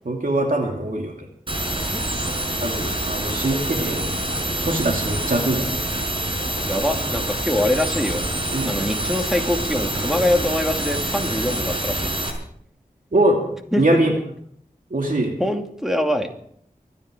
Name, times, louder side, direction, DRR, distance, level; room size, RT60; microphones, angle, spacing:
voice 1, 0.1-1.2 2.6-4.0 4.6-5.8 8.5-8.7 13.1-13.4 13.8-14.1 14.9-15.3, right 1 dB, 70° right, 1 dB, 2.6 m, -22 dB
sound 1, 1.5-12.3, right 1 dB, 35° right, 5.3 m, -26 dB
voice 2, 6.7-8.2 8.6-12.1 13.7-13.8 15.4-16.3, left 1 dB, 5° right, 3 dB, 2.5 m, -23 dB
24.5 x 10.5 x 5.1 m, 0.66 s
wide cardioid pair, 50°, 15 cm